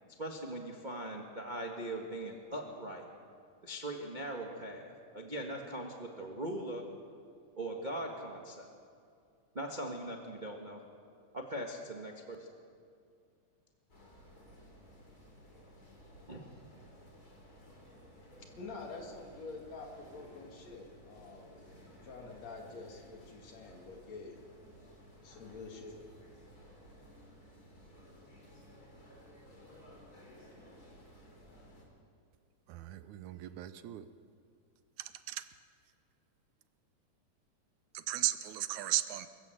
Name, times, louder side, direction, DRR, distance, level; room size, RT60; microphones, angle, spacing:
voice 1, 0.2-3.1 3.6-6.8 7.6-8.7 9.5-10.8 11.3-12.5 16.3-16.5, right 1 dB, 25° right, 1 dB, 0.9 m, -40 dB
sound 1, 13.9-31.8, equal, 30° left, 3.7 m, -56 dB
voice 2, 18.6-21.6 21.9-24.4 25.2-26.0, left 3 dB, 60° left, 2 dB, 3.4 m, -47 dB
voice 3, 32.7-34.1 35.0-35.5 37.9-39.3, right 13 dB, 80° right, 12 dB, 2.1 m, -36 dB
24.0 x 15.0 x 7.8 m, 2.3 s
omnidirectional pair, 3.5 m